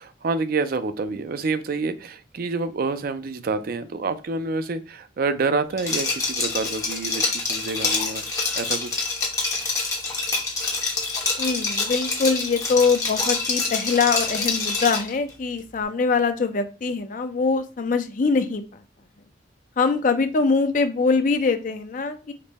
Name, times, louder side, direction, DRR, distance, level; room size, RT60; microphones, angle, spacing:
voice 1, 0.0-8.2 8.6-9.0, right 3 dB, 50° right, 0.4 m, -27 dB
Liquid, 5.8-15.1, left 3 dB, 20° left, 1.0 m, -26 dB
voice 2, 11.4-18.6 19.8-22.3, left 4 dB, 45° left, 0.5 m, -23 dB
5.2 x 2.1 x 4.0 m
head